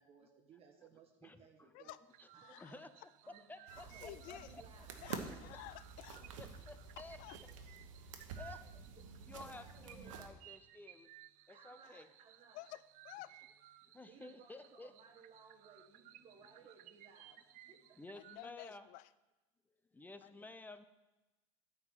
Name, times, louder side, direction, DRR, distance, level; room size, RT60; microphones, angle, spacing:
voice 1, 0.0-2.0 2.3-2.8 3.2-3.4 3.8-5.5 9.3-10.2 11.5-12.6 14.1-17.4 17.7-17.8, right 5 dB, 40° right, 0 dB, 1.3 m, -61 dB
voice 2, 1.2-1.7 2.6-2.9 3.5-4.6 6.4-7.2 8.4-8.7 9.3-11.1 11.5-12.1 13.9-14.9 18.0-18.9 19.9-20.8, left 2 dB, 10° left, 11 dB, 0.6 m, -53 dB
sound 1, 2.1-18.4, right 14 dB, 55° right, 0.5 m, -61 dB
voice 3, 2.3-3.1 3.7-4.6 5.0-6.3 7.0-7.4 7.7-7.8 11.8-12.0 12.5-13.5 18.1-19.1 20.2-20.4, left 16 dB, 60° left, 17 dB, 0.5 m, -53 dB
sound 2, 3.7-10.3, right 5 dB, 85° right, 1.1 m, -50 dB
9.4 x 4.6 x 7.6 m, 1.1 s
supercardioid pair, 95°, 16 cm